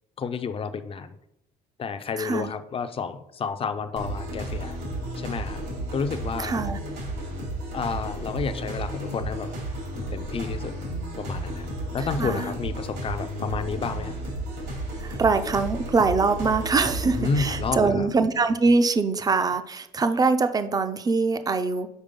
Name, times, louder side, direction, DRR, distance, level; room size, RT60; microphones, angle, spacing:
voice 1, 0.2-1.2 1.8-4.8 5.2-5.6 5.9-6.5 7.7-9.5 9.9-10.7 11.2-11.7 11.9-14.1 17.1-18.1, left 5 dB, 35° left, 10 dB, 0.5 m, -30 dB
voice 2, 2.2-2.5 6.4-6.8 12.2-12.5 15.0-21.9, right 4 dB, 20° right, 9 dB, 0.5 m, -23 dB
sound 1, 4.0-17.7, right 1 dB, 75° right, 2.8 m, -33 dB
5.3 x 4.8 x 5.2 m, 0.83 s
cardioid pair, 110°, 17 cm